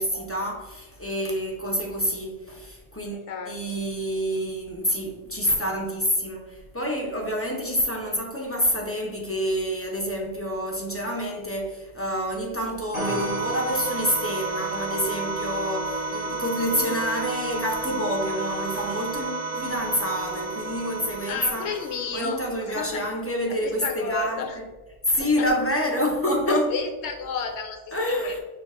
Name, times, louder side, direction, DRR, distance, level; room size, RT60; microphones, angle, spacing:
voice 1, 0.0-21.7 22.1-24.4 25.1-26.7 27.9-28.4, equal, 15° left, -1 dB, 0.5 m, -27 dB
voice 2, 3.1-3.5 21.2-23.1 23.5-24.6 25.4-25.5 26.5-27.8 28.1-28.3, left 5 dB, 65° left, 4 dB, 0.9 m, -31 dB
sound 1, 12.9-22.4, right 3 dB, 65° right, 1.8 m, -31 dB
5.7 x 2.4 x 3.6 m, 1.2 s
omnidirectional pair, 1.3 m